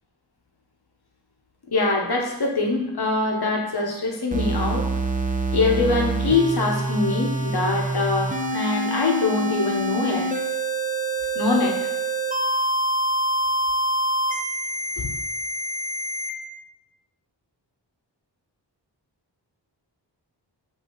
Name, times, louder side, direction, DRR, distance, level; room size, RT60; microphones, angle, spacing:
voice 1, 1.7-4.9 5.5-10.3 11.3-11.8 15.0-15.1, left 3 dB, 60° left, 1 dB, 0.9 m, -23 dB
sound 1, 4.3-16.3, right 2 dB, 20° right, 0.5 m, -26 dB
5.4 x 2.7 x 3.1 m, 0.89 s
wide cardioid pair, 45°, 44 cm